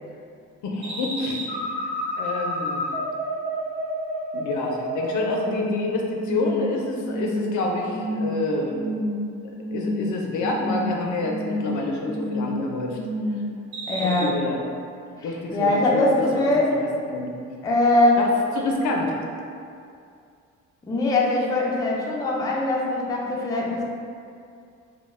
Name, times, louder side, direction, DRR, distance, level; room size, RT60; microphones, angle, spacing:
voice 1, 0.6-1.7 2.2-2.9 4.3-8.7 9.7-13.0 14.0-14.6 15.2-16.5 16.7-17.3 18.2-18.3 18.6-19.1, left 2 dB, 70° left, 0 dB, 0.5 m, -27 dB
sound 1, 0.8-5.8 6.1-6.6 7.0-7.5 7.9-8.3 8.7-9.2 9.5-10.1 10.4-10.9 11.2-11.7 12.0-12.5 12.9-13.4 13.7-14.2, equal, 60° right, 0.9 m, -29 dB
voice 2, 13.9-14.3 15.2-16.8 17.6-18.2 20.9-23.8, left 2 dB, 15° left, -3 dB, 0.3 m, -22 dB
2.1 x 2.1 x 3.1 m, 2.4 s
cardioid pair, 90°, 30 cm